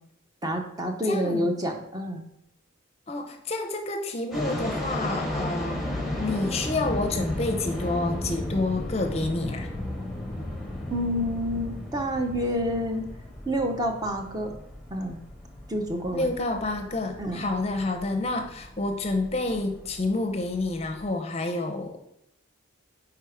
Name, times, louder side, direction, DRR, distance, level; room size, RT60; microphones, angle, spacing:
voice 1, 0.4-2.2 10.9-13.1 13.5-14.5 14.9-15.2 15.7-16.3 17.2-17.4, equal, 20° right, 2 dB, 0.6 m, -28 dB
voice 2, 1.0-1.5 3.1-5.8 6.2-9.7 16.1-22.0, left 2 dB, 30° left, 5 dB, 0.5 m, -29 dB
sound 1, 4.3-21.0, left 1 dB, ahead, 0.9 m, -34 dB
4.8 x 4.5 x 4.8 m, 0.77 s
head